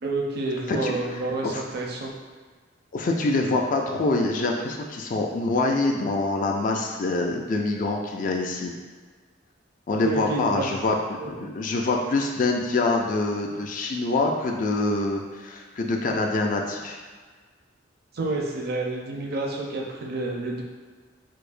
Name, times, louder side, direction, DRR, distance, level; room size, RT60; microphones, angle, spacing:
voice 1, 0.0-2.1 10.0-10.7 11.2-11.5 18.1-20.6, right 2 dB, 50° right, -1 dB, 0.5 m, -29 dB
voice 2, 2.9-8.7 9.9-11.0 11.4-17.0, left 2 dB, 40° left, 1 dB, 0.3 m, -25 dB
4.6 x 2.1 x 2.5 m, 1.5 s
head